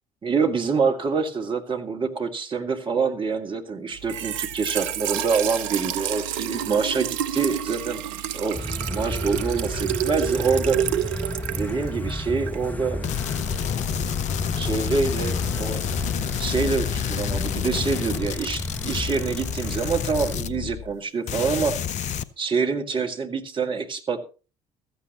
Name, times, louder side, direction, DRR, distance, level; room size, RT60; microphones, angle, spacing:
voice 1, 0.2-8.0 8.3-8.6 8.9-10.8 11.5-13.0 14.6-15.8 16.4-21.8 22.4-24.3, right 5 dB, 30° right, 4 dB, 2.0 m, -26 dB
Trickle dribble / Fill (with liquid), 3.9-12.7, right 10 dB, 65° right, 0.7 m, -29 dB
sound 1, 8.5-20.4, left 1 dB, 10° left, 1.1 m, -32 dB
sound 2, 13.0-21.0 21.3-22.2, left 9 dB, 45° left, 0.7 m, -29 dB
15.5 x 14.0 x 3.0 m, 0.34 s
figure-of-eight pair, 55°, 17 cm